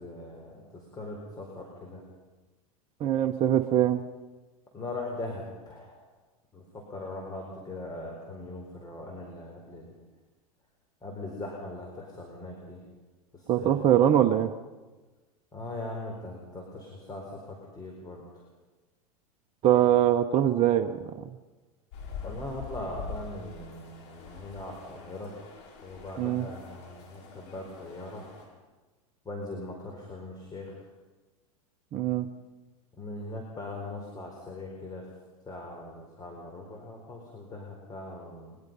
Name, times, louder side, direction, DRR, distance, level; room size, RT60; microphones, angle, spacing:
voice 1, 0.0-2.0 4.7-6.1 6.5-9.9 11.0-12.8 13.3-13.7 15.5-18.2 22.2-25.4 25.8-28.2 29.2-30.8 33.0-35.1 35.4-38.6, left 2 dB, 20° left, 0 dB, 4.4 m, -40 dB
voice 2, 3.0-4.0 13.5-14.5 19.6-21.3 26.2-26.4 31.9-32.3, right 11 dB, 35° right, 5 dB, 1.0 m, -23 dB
sound 1, 21.9-28.5, left 5 dB, 55° left, 6.7 m, -44 dB
22.0 x 21.5 x 5.5 m, 1.2 s
hypercardioid pair, 100°, 19 cm